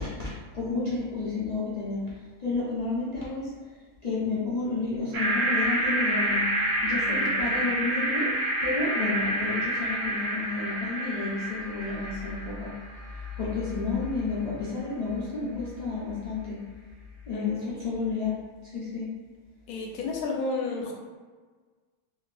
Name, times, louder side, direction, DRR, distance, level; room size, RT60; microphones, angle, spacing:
voice 1, 0.0-2.0 2.4-3.5 4.0-6.4 6.8-8.3 8.6-12.7 13.4-16.6 17.3-18.4 18.7-19.1, left 4 dB, 50° left, -9 dB, 0.4 m, -31 dB
sound 1, 5.1-13.3, right 1 dB, 65° right, 1.0 m, -28 dB
voice 2, 7.1-7.6 17.3-17.7 19.7-20.9, left 3 dB, 85° left, -1 dB, 1.1 m, -32 dB
2.6 x 2.5 x 3.2 m, 1.4 s
omnidirectional pair, 1.5 m